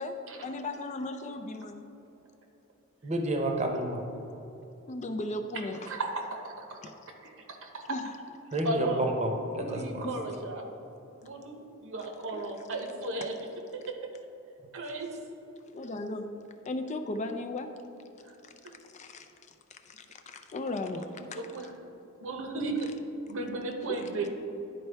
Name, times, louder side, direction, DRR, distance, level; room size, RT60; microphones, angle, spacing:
voice 1, 0.0-1.9 4.9-5.8 6.8-6.9 7.9-8.0 10.0-10.1 12.3-12.4 15.7-16.3 16.7-17.7 18.4-18.5 18.9-19.3 19.9-21.4, left 2 dB, 35° left, 6 dB, 0.4 m, -36 dB
voice 2, 3.0-4.0 8.5-10.0, right 1 dB, 30° right, 3 dB, 0.8 m, -30 dB
voice 3, 5.5-6.8 7.2-7.8 8.6-9.1 9.5-10.7 11.2-13.4 13.7-14.1 14.7-15.1 18.6-18.7 20.9-21.7 22.2-22.9 23.2-24.3, right 2 dB, 65° right, 3 dB, 0.8 m, -35 dB
11.0 x 4.4 x 3.4 m, 2.9 s
head